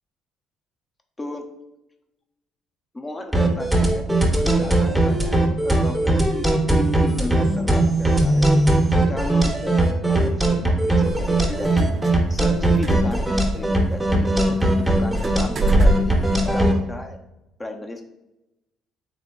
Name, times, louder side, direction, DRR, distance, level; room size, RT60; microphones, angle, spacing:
voice 1, 1.2-1.5 2.9-4.1 4.3-6.5 6.9-8.5 8.9-11.9 12.3-17.2 17.6-18.0, left 1 dB, 20° left, 4 dB, 0.7 m, -34 dB
sound 1, 3.3-16.7, right 1 dB, ahead, 0.9 m, -19 dB
sound 2, 11.0-16.6, right 1 dB, 40° right, 0.6 m, -26 dB
3.8 x 3.1 x 3.7 m, 0.93 s
cardioid pair, 95°, 0 cm